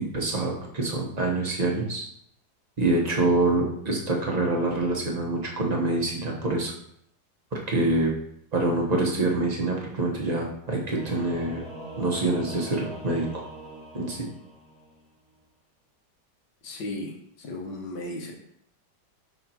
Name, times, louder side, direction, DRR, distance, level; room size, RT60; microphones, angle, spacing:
voice 1, 0.1-2.1 2.8-6.7 7.5-8.1 8.5-11.6 12.0-13.4 13.9-14.2, right 2 dB, 30° right, -1 dB, 0.9 m, -26 dB
Singing / Musical instrument, 10.9-15.0, right 1 dB, 5° left, 1.5 m, -42 dB
voice 2, 16.6-18.3, left 1 dB, 75° left, 1 dB, 1.7 m, -35 dB
5.8 x 5.8 x 2.8 m, 0.72 s
omnidirectional pair, 1.9 m